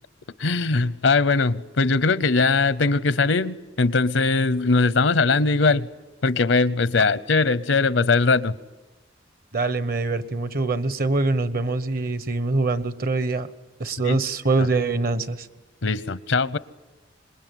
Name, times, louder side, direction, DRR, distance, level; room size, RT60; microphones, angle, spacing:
voice 1, 0.4-5.9 6.2-8.5 14.0-14.2 14.6-14.7 15.8-16.6, left 3 dB, 85° left, 17 dB, 0.8 m, -20 dB
voice 2, 9.5-13.5 13.8-15.5, right 3 dB, 50° right, 14 dB, 1.0 m, -24 dB
26.0 x 21.5 x 9.3 m, 1.1 s
head